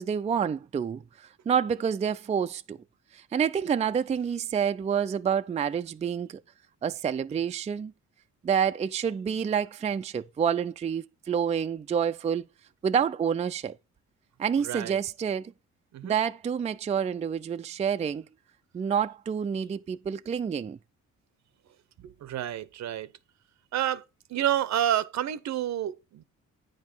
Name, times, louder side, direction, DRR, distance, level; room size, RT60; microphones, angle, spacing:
voice 1, 0.0-2.8 3.1-6.4 6.8-7.9 8.4-12.4 12.8-13.8 14.4-15.5 16.0-18.2 18.7-20.8, right 7 dB, 25° right, 0.4 m, -28 dB
voice 2, 14.6-15.0 15.9-16.1 22.0-23.1 23.7-24.0 24.3-26.2, right 11 dB, 65° right, 0.7 m, -29 dB
9.4 x 5.2 x 4.4 m
cardioid pair, 90°, 30 cm